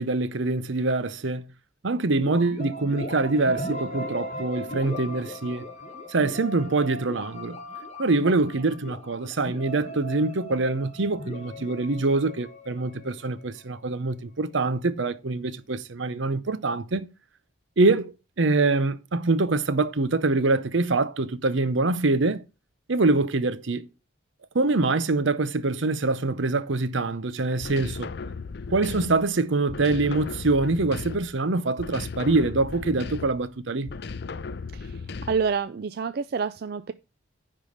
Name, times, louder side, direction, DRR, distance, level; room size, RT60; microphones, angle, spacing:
voice 1, 0.0-1.5 1.8-5.7 6.1-7.6 8.0-17.1 17.8-22.4 22.9-23.9 24.5-28.1 28.7-33.9, right 3 dB, 70° right, 0.7 m, -24 dB
sound 1, 2.2-13.9, equal, 35° left, 1.5 m, -38 dB
sound 2, 27.6-29.3 29.7-31.4 31.8-33.5 33.9-35.6, left 4 dB, 55° left, 0.5 m, -36 dB
voice 2, 35.3-36.9, right 5 dB, 50° right, 0.4 m, -28 dB
10.0 x 3.8 x 6.4 m
head